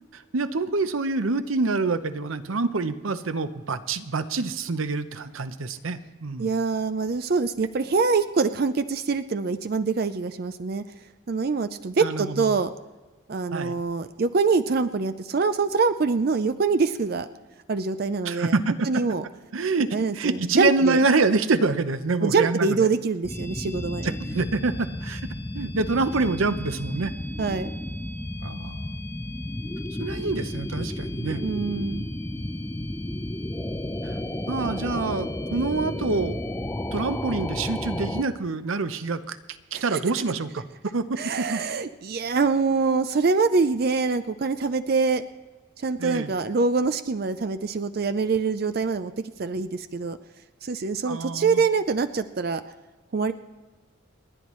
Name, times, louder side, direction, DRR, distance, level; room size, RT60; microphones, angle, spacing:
voice 1, 0.1-6.5 12.0-12.5 13.5-13.7 18.2-18.9 19.5-22.7 24.0-25.2 25.5-27.1 28.4-28.9 30.0-31.4 34.0-34.1 34.5-36.4 36.9-39.4 39.7-41.0 41.4-41.6 46.0-46.3 51.1-51.6, right 3 dB, 90° right, 12 dB, 0.7 m, -26 dB
voice 2, 6.4-10.8 11.3-12.7 13.3-17.3 17.7-18.5 18.9-19.2 19.9-21.0 22.2-24.1 27.4-27.7 31.4-32.1 39.7-40.0 41.2-45.2 45.8-50.2 50.6-52.6 53.1-53.3, right 4 dB, 50° right, 11 dB, 0.4 m, -24 dB
sound 1, 23.2-38.2, left 1 dB, 10° left, 0.6 m, -32 dB
29.5 x 9.9 x 3.1 m, 1.3 s
head